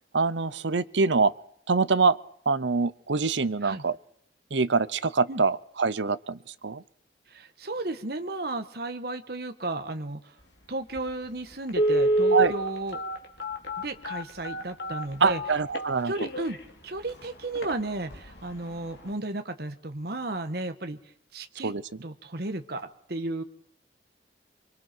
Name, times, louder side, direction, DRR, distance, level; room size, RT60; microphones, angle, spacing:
voice 1, 0.1-1.3 1.7-2.2 2.5-4.0 4.5-6.8 12.3-12.5 15.2-16.1 21.6-21.8, right 4 dB, 85° right, 16 dB, 0.8 m, -24 dB
voice 2, 7.3-10.3 10.7-13.0 13.8-15.4 16.0-16.6 16.8-21.0 21.3-21.7 22.0-23.4, right 2 dB, 60° right, 7 dB, 1.5 m, -34 dB
Telephone, 11.0-11.1 11.7-16.6 17.1-17.2 17.6-17.7 18.1-18.4 18.7-18.8, right 1 dB, 75° left, 2.7 m, -27 dB
25.5 x 24.5 x 4.6 m, 0.66 s
head